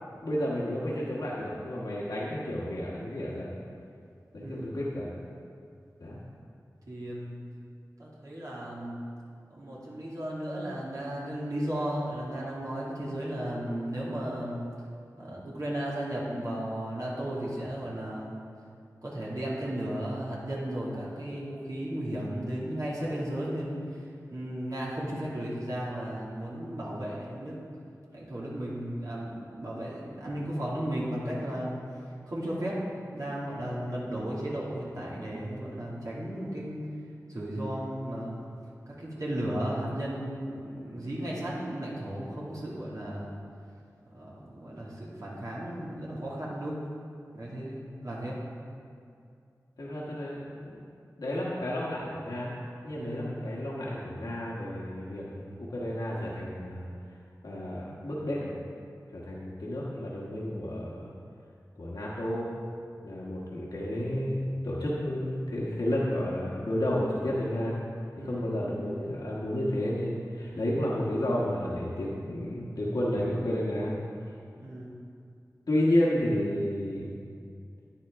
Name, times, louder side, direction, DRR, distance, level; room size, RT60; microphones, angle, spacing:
voice 1, 0.2-3.5 4.3-5.2 6.0-6.2 49.8-50.8 51.2-52.5 52.8-56.9 57.4-58.5 59.1-61.1 61.8-62.5 63.0-67.8 68.2-73.9 75.7-77.1, left 1 dB, 80° left, -6 dB, 1.4 m, -31 dB
voice 2, 4.4-4.7 6.9-7.4 8.0-9.1 9.5-14.6 15.2-18.4 19.0-23.8 24.3-27.6 28.1-31.8 32.3-36.8 37.3-38.5 38.9-43.3 44.1-46.8 47.3-48.4 52.9-53.2 68.2-68.5 74.6-74.9, right 1 dB, 60° right, -6 dB, 2.3 m, -35 dB
10.0 x 9.7 x 3.6 m, 2.4 s
wide cardioid pair, 45°, 6 cm